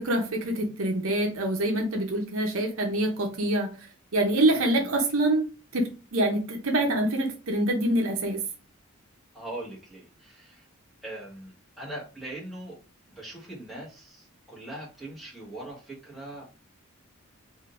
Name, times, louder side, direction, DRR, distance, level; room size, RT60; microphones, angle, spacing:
voice 1, 0.0-3.7 4.1-5.5 5.7-8.4, right 1 dB, 75° right, 2 dB, 0.7 m, -25 dB
voice 2, 9.3-10.7 11.0-12.8 13.2-16.5, right 1 dB, ahead, -6 dB, 1.4 m, -41 dB
3.6 x 2.6 x 2.4 m, 0.33 s
head